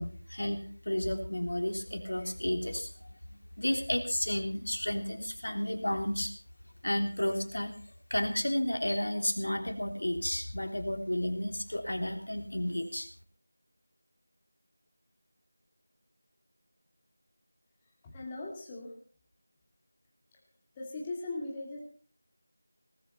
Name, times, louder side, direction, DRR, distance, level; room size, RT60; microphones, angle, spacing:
voice 1, 0.0-2.9 3.3-6.3 6.8-7.7 8.1-13.1, left 1 dB, 80° left, 6 dB, 3.4 m, -32 dB
voice 2, 18.0-19.0 20.3-20.4 20.7-21.8, left 2 dB, 10° left, -3 dB, 2.5 m, -39 dB
19.0 x 14.0 x 4.3 m, 0.43 s
figure-of-eight pair, 175°, 0 cm